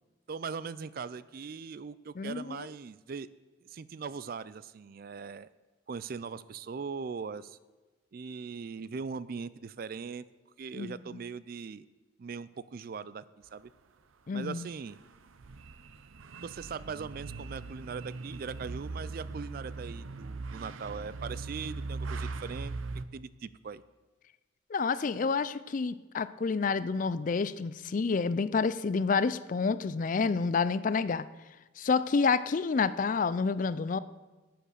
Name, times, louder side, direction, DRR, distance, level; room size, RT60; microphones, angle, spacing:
voice 1, 0.3-3.3 3.6-5.5 5.9-7.6 8.1-10.2 10.6-11.9 12.2-13.3 13.5-13.7 14.3-15.0 16.4-22.7 23.1-23.8, right 5 dB, 45° right, 17 dB, 0.3 m, -40 dB
voice 2, 2.2-2.7 10.7-11.0 14.3-14.7 24.7-31.3 31.8-34.0, left 4 dB, 40° left, 16 dB, 0.4 m, -29 dB
sound 1, 14.9-23.0, right 3 dB, 90° right, 0.7 m, -40 dB
11.0 x 7.8 x 6.6 m, 1.2 s
head